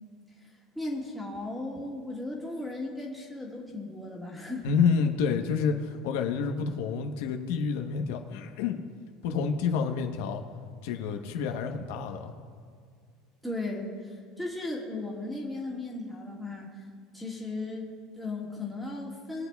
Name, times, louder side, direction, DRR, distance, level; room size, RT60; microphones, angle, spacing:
voice 1, 0.7-4.7 13.4-16.7 17.1-19.5, left 2 dB, ahead, -2 dB, 1.6 m, -36 dB
voice 2, 4.6-8.8 9.2-10.4 10.8-12.3, left 6 dB, 75° left, 4 dB, 0.9 m, -28 dB
22.5 x 8.0 x 2.3 m, 2.1 s
cardioid pair, 160°, 0 cm